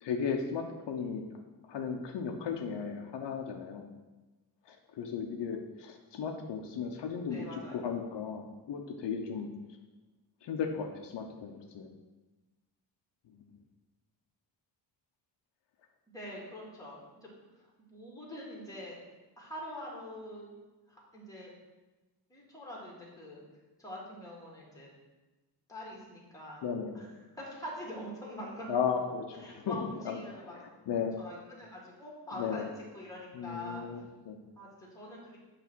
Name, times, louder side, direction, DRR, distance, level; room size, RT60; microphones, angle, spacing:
voice 1, 0.0-1.3 1.7-3.9 4.7-7.5 7.7-9.5 10.4-11.9 26.6-26.9 28.7-29.8 30.0-30.2 30.5-31.1 32.4-32.7 33.3-34.4, left 6 dB, 80° left, 3 dB, 0.8 m, -35 dB
voice 2, 7.3-7.9 16.1-19.0 19.4-20.6 20.9-21.6 22.3-23.4 23.8-24.9 25.7-26.7 26.9-27.1 27.4-28.8 29.3-30.5 31.2-33.8 34.6-35.4, left 1 dB, 10° left, -4 dB, 1.8 m, -44 dB
8.2 x 3.4 x 6.1 m, 1.1 s
wide cardioid pair, 180°, 42 cm